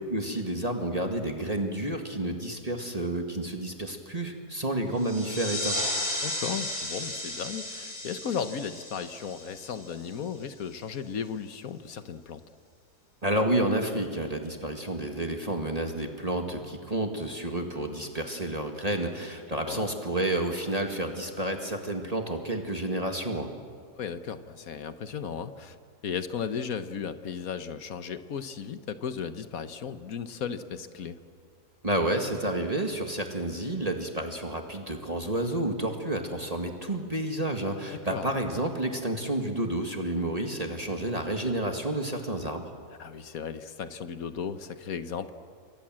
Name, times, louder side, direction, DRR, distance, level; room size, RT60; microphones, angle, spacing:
voice 1, 0.1-5.8 13.2-23.5 31.8-42.7, right 1 dB, 25° right, 3 dB, 2.0 m, -30 dB
sound 1, 5.0-10.3, left 1 dB, 10° left, 4.4 m, -34 dB
voice 2, 6.2-12.4 19.7-19.8 23.9-25.8 26.0-31.2 38.1-38.3 43.0-45.3, left 7 dB, 60° left, 11 dB, 1.4 m, -35 dB
28.0 x 23.5 x 7.6 m, 2.1 s
omnidirectional pair, 1.8 m